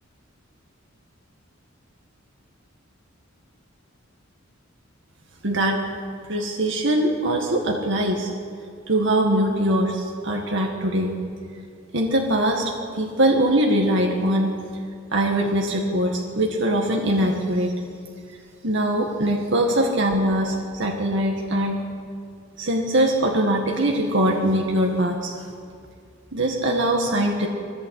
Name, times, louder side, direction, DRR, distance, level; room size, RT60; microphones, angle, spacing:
voice 1, 5.4-5.8 6.3-8.3 8.9-11.1 11.9-12.7 13.0-14.5 15.1-17.8 18.6-21.8 22.6-25.5 26.3-27.5, right 1 dB, 60° right, 1 dB, 2.0 m, -22 dB
21.5 x 15.5 x 8.4 m, 2.2 s
head